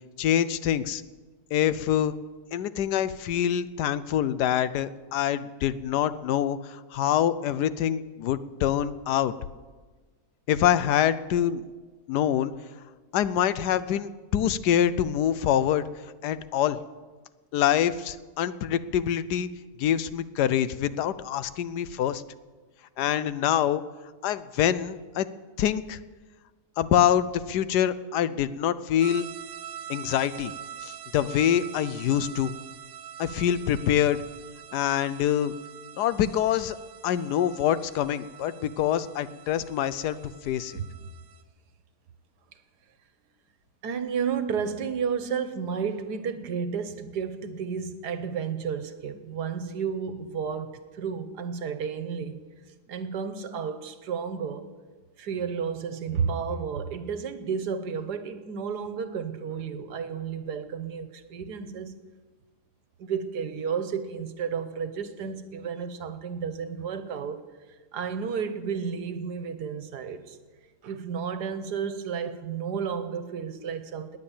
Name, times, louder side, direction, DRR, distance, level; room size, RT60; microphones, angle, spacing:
voice 1, 0.2-1.0 1.5-2.1 2.5-9.3 10.5-11.6 12.1-12.5 13.1-15.8 16.2-16.8 17.5-19.5 19.8-22.2 23.0-23.8 24.2-25.3 25.6-26.0 26.8-29.3 29.9-30.5 30.8-32.5 33.2-34.2 34.7-35.5 36.0-36.8 37.0-40.2 40.4-40.8, left 10 dB, 85° left, 1.3 m, -25 dB
sound 1, 29.0-41.4, right 9 dB, 65° right, 1.1 m, -44 dB
voice 2, 43.8-52.4 52.9-54.7 55.2-61.9 63.0-67.4 67.9-70.4 70.8-74.2, right 6 dB, 90° right, 1.6 m, -32 dB
19.0 x 9.6 x 7.2 m
omnidirectional pair, 1.7 m